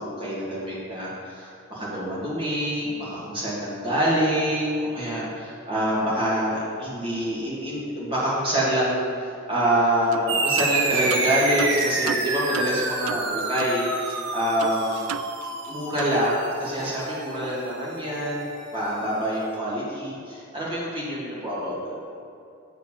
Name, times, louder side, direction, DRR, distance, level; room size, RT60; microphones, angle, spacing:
voice 1, 0.0-15.0 15.7-18.5 18.7-22.0, equal, 25° right, -7 dB, 2.3 m, -26 dB
sound 1, 10.1-10.3 10.6-13.8 14.1-14.2 14.6-15.7 16.0-16.2, right 8 dB, 85° right, 0.3 m, -34 dB
sound 2, 10.3-19.2, right 3 dB, 55° right, 0.9 m, -29 dB
7.9 x 5.0 x 7.0 m, 2.5 s
head